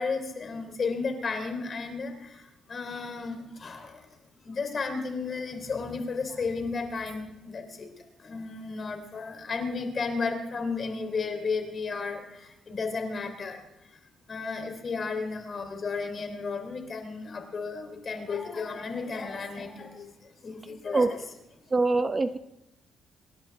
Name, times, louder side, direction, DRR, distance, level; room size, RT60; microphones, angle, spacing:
voice 1, 0.0-2.3 2.7-4.0 4.4-7.9 8.2-13.6 14.3-20.1 20.4-21.2, left 4 dB, 40° left, 5 dB, 3.5 m, -33 dB
voice 2, 21.7-22.4, right 3 dB, 25° right, 10 dB, 0.7 m, -24 dB
26.0 x 11.0 x 3.6 m, 0.90 s
cardioid pair, 90°, 0 cm